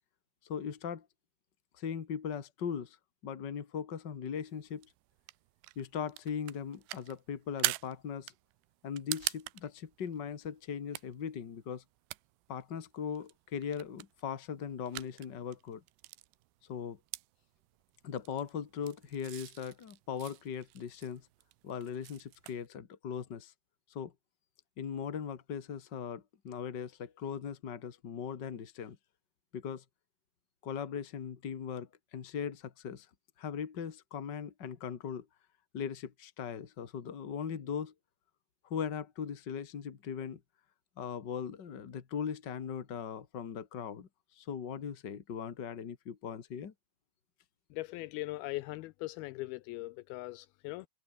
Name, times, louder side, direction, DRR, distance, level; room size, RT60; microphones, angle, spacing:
voice 1, 0.4-1.1 1.7-3.0 3.2-4.9 5.7-8.3 8.8-11.8 12.5-15.8 16.6-17.0 18.0-21.3 21.6-23.5 23.9-24.1 24.8-29.0 29.5-29.8 30.6-33.1 33.4-35.2 35.7-37.9 38.6-40.4 41.0-46.7, left 7 dB, 55° left, 1.1 m, -39 dB
sound 1, 4.5-22.7, right 20 dB, 90° right, 2.8 m, -44 dB
voice 2, 47.7-50.9, left 19 dB, 85° left, 2.2 m, -40 dB
omnidirectional pair, 4.8 m